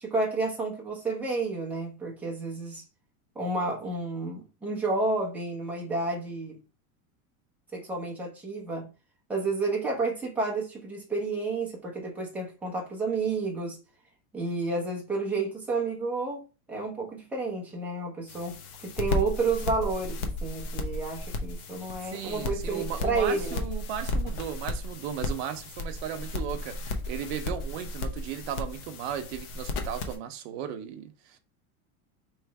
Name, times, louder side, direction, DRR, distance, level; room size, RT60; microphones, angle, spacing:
voice 1, 0.0-2.8 3.4-6.6 7.7-8.9 9.3-13.8 14.3-16.4 16.7-18.6 18.8-23.6, right 3 dB, 5° right, 0.8 m, -30 dB
sound 1, 18.3-30.2, left 2 dB, 45° left, 0.8 m, -34 dB
voice 2, 22.0-31.4, right 9 dB, 50° right, 0.8 m, -36 dB
3.3 x 3.2 x 4.6 m
supercardioid pair, 170°, 42 cm